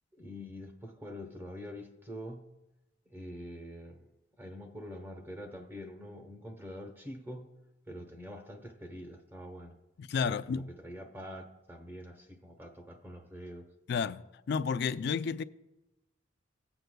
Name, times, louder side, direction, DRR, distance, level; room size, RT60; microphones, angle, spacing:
voice 1, 0.1-2.4 3.1-4.1 4.4-7.5 7.9-9.8 10.2-13.7, equal, 10° right, 1.0 m, -45 dB
voice 2, 10.0-10.7 13.9-15.4, left 6 dB, 65° left, 0.4 m, -31 dB
17.5 x 7.9 x 2.2 m
head